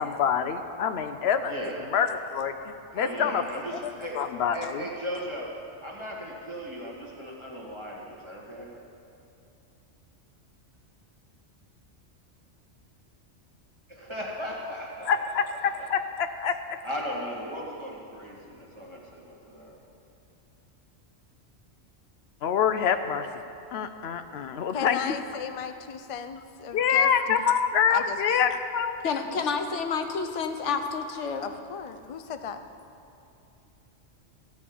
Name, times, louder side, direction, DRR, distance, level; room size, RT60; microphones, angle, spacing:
voice 1, 0.0-1.5 1.9-2.5 2.9-3.4 4.1-4.8 15.1-16.6 22.4-23.3 23.7-25.2 26.7-29.0, left 7 dB, 70° left, 9 dB, 0.8 m, -26 dB
voice 2, 1.5-1.9 2.9-8.7 13.9-15.9 16.8-19.8, equal, 25° right, -3 dB, 1.7 m, -37 dB
voice 3, 24.7-27.1 27.9-28.2 31.4-32.6, left 7 dB, 50° left, 9 dB, 0.4 m, -35 dB
voice 4, 29.0-31.5, left 5 dB, 90° left, 6 dB, 1.2 m, -29 dB
14.5 x 5.3 x 8.5 m, 2.7 s
omnidirectional pair, 1.2 m